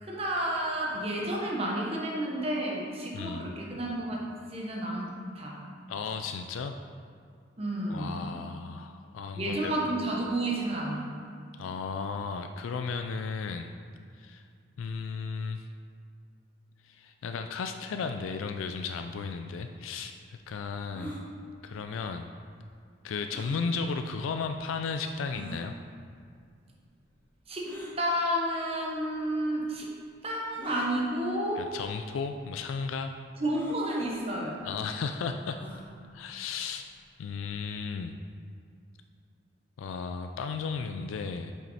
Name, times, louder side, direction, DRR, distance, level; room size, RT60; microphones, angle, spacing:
voice 1, 0.0-5.6 7.6-8.1 9.3-11.1 27.5-27.7 28.0-29.9 30.2-31.7 33.4-34.6, right 1 dB, 30° right, -3 dB, 1.0 m, -31 dB
voice 2, 3.1-3.5 5.9-6.7 7.9-9.7 11.6-13.7 14.2-14.4 14.8-15.6 16.8-20.1 20.5-21.2 21.6-22.3 23.0-25.7 31.6-33.1 34.6-35.6 36.1-36.9 37.2-38.1 39.8-41.5, left 5 dB, 90° left, 6 dB, 0.3 m, -34 dB
sound 1, 20.9-21.2 23.3-23.6 24.4-24.5 25.3-25.6 27.6-28.0 29.0-29.1 30.6-30.9 31.8-32.0 32.2-32.3 33.5-33.8 35.5-35.9, equal, 10° left, 1.0 m, -41 dB
7.2 x 5.7 x 4.2 m, 2.3 s
head